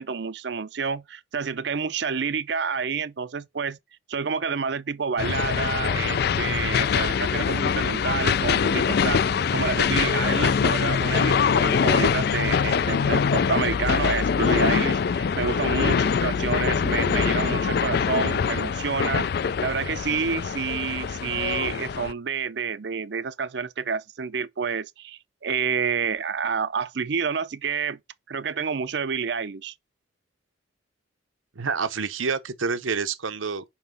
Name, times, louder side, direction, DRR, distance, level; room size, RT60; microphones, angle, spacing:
voice 1, 0.0-3.8 4.1-9.2 9.5-19.3 19.6-28.0 28.3-29.7, right 5 dB, 60° right, 0.5 m, -29 dB
sound 1, 5.2-22.1, left 6 dB, 50° left, 0.3 m, -23 dB
voice 2, 31.6-33.6, right 5 dB, 85° right, 0.8 m, -28 dB
5.8 x 5.1 x 5.3 m
head